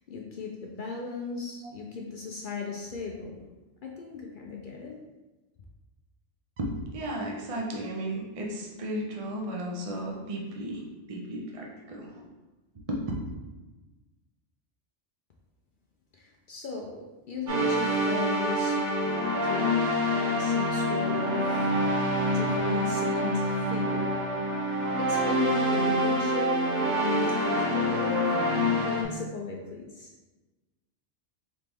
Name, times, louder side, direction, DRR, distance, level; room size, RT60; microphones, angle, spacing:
voice 1, 0.1-3.4 3.8-5.0 16.1-24.3 25.0-28.3 28.8-30.1, left 5 dB, 60° left, 0 dB, 0.5 m, -36 dB
voice 2, 6.6-12.3 12.9-13.0, right 1 dB, 40° right, -1 dB, 0.6 m, -34 dB
sound 1, 17.5-29.0, equal, 80° right, 1.2 m, -26 dB
4.1 x 3.0 x 3.4 m, 1.2 s
omnidirectional pair, 1.2 m